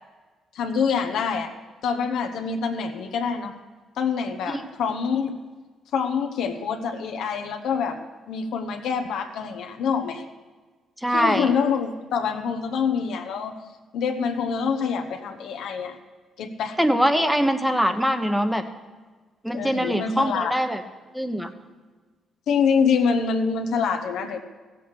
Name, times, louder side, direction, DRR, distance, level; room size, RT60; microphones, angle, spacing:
voice 1, 0.5-1.5 1.8-3.5 4.0-5.4 5.9-8.0 8.3-10.2 11.1-13.5 13.9-16.0 16.4-16.8 19.5-20.6 22.5-24.4, left 6 dB, 80° left, 5 dB, 1.0 m, -25 dB
voice 2, 11.0-11.5 16.8-18.6 19.4-20.8 21.1-21.5, equal, 5° right, 8 dB, 1.2 m, -22 dB
15.5 x 7.8 x 6.6 m, 1.3 s
cardioid pair, 90°, 0 cm